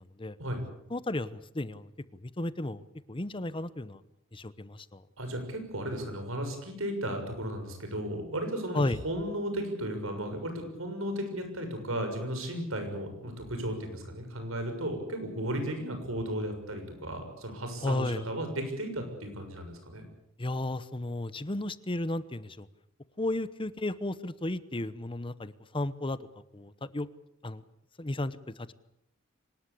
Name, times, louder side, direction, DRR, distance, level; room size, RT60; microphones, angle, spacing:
voice 1, 0.9-1.9 2.2-4.0 4.3-5.0 8.7-9.0 17.8-18.2 20.4-22.7 23.2-26.2 26.5-27.1 27.4-27.6 28.0-28.7, left 1 dB, 25° left, 15 dB, 0.9 m, -33 dB
voice 2, 5.2-20.0, right 1 dB, 90° right, 6 dB, 6.7 m, -35 dB
25.0 x 19.5 x 8.4 m, 0.80 s
head